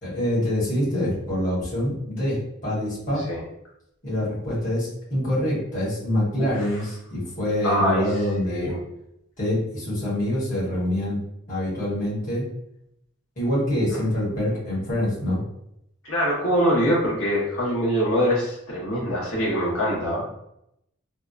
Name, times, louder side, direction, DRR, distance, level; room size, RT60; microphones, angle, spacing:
voice 1, 0.0-3.2 4.0-8.7 9.4-11.2 11.5-12.4 13.4-15.4, left 1 dB, 35° left, -8 dB, 1.2 m, -25 dB
voice 2, 7.6-8.0 8.4-8.8 16.0-20.3, equal, 80° left, -6 dB, 0.9 m, -24 dB
2.8 x 2.2 x 2.3 m, 0.79 s
head